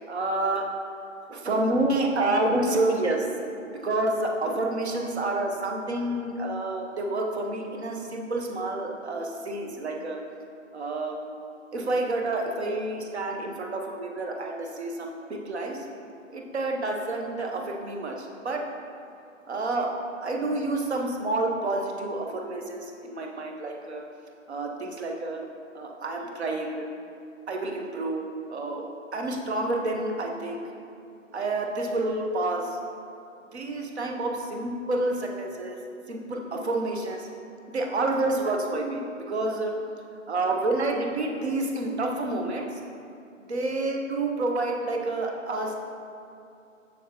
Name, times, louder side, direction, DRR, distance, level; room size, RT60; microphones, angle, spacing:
voice 1, 0.1-0.6 1.3-3.5 3.8-10.2 10.7-11.2 11.7-15.9 16.3-18.7 19.5-19.9 20.2-24.0 24.5-25.4 25.7-26.9 27.5-30.6 31.3-32.8 33.5-35.8 36.1-37.3 37.7-39.0 39.3-39.7 40.3-42.8 43.5-45.7, right 2 dB, 55° right, 1 dB, 0.9 m, -29 dB
6.6 x 6.3 x 2.9 m, 2.6 s
hypercardioid pair, 170°, 40 cm